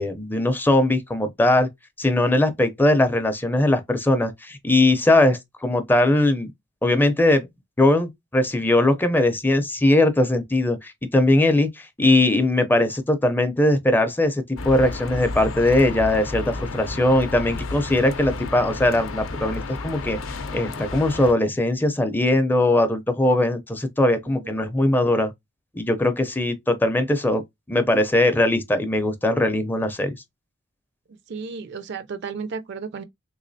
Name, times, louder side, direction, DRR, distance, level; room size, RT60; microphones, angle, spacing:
voice 1, 0.0-1.7 2.0-6.5 6.8-7.5 7.8-25.3 25.7-27.4 27.7-30.2, left 1 dB, 10° left, 0.4 m, -20 dB
sound 1, 14.6-21.3, left 3 dB, 75° left, 0.6 m, -32 dB
voice 2, 24.3-24.6 31.3-33.0, right 5 dB, 60° right, 0.4 m, -33 dB
3.4 x 3.1 x 2.6 m
head